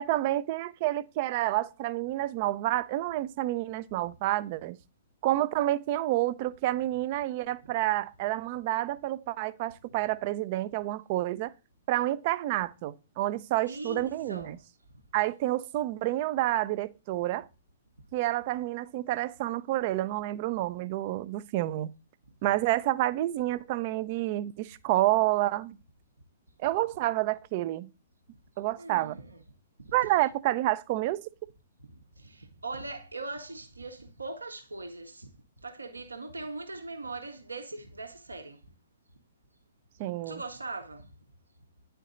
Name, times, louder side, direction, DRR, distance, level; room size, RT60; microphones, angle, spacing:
voice 1, 0.0-4.8 5.2-11.5 11.9-14.6 15.1-17.5 18.1-21.9 22.4-25.8 26.6-27.9 28.6-29.2 29.9-31.3 40.0-40.4, right 15 dB, 40° right, 0.4 m, -29 dB
voice 2, 13.6-14.6 28.8-29.4 29.8-29.9 31.8-31.9 32.2-35.3 35.6-38.6 40.3-41.1, right 3 dB, 80° right, 1.1 m, -40 dB
9.8 x 4.5 x 3.7 m
figure-of-eight pair, 115°, 0 cm